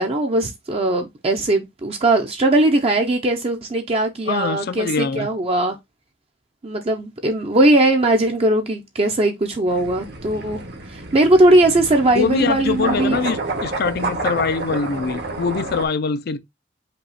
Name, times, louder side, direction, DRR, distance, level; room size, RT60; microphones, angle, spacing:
voice 1, 0.0-5.8 6.6-10.6 10.9-13.2, right 1 dB, 30° right, 0.6 m, -19 dB
voice 2, 4.3-5.3 12.1-16.4, left 5 dB, 55° left, 0.5 m, -23 dB
sound 1, 9.7-15.9, right 2 dB, 60° right, 1.2 m, -29 dB
5.3 x 2.3 x 4.1 m
head